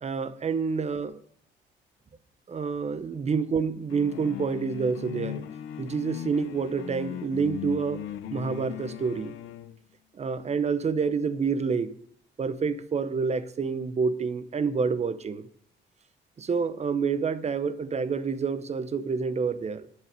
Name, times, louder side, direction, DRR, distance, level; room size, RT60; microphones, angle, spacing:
voice 1, 0.0-1.2 2.5-5.4 5.8-8.0 8.3-9.4 10.1-12.0 12.4-15.5 16.4-19.9, right 5 dB, 35° right, 0.7 m, -28 dB
sound 1, 3.9-9.8, left 11 dB, 80° left, 0.6 m, -38 dB
8.5 x 6.5 x 5.2 m
cardioid pair, 90°, 20 cm